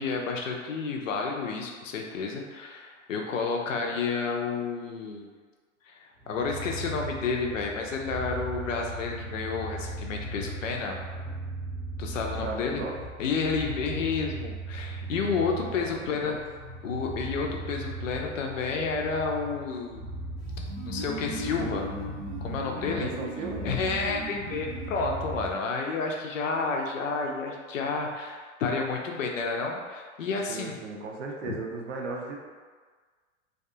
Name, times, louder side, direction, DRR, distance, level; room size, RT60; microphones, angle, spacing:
voice 1, 0.0-5.2 5.9-11.0 12.0-12.8 13.2-16.4 16.8-20.1 20.8-21.9 22.4-23.1 23.6-30.8, left 4 dB, 70° left, 1 dB, 0.6 m, -30 dB
sound 1, 6.2-25.5, right 2 dB, 20° right, 0.3 m, -38 dB
voice 2, 12.4-13.0 15.8-16.4 22.9-23.7 30.5-32.4, right 3 dB, 60° right, 0 dB, 0.6 m, -36 dB
sound 2, 20.4-25.3, equal, 25° left, 0.9 m, -38 dB
2.6 x 2.3 x 2.5 m, 1.5 s
figure-of-eight pair, 95°, 41 cm